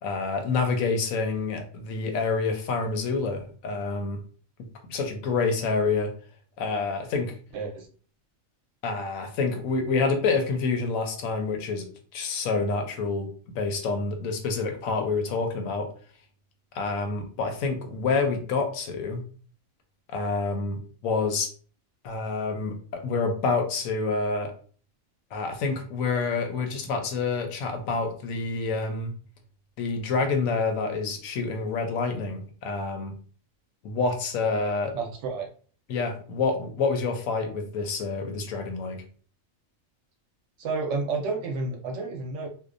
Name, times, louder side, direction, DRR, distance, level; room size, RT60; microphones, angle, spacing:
voice 1, 0.0-4.2 4.9-6.1 6.6-7.3 8.8-11.9 12.1-15.9 16.7-19.2 20.1-21.5 22.0-24.5 25.3-29.1 29.8-33.2 33.8-34.9 35.9-39.0, left 4 dB, 85° left, 5 dB, 1.0 m, -27 dB
voice 2, 7.5-7.9 34.9-35.5 40.6-42.5, right 3 dB, 70° right, 2 dB, 0.9 m, -30 dB
2.6 x 2.1 x 2.5 m, 0.42 s
omnidirectional pair, 1.4 m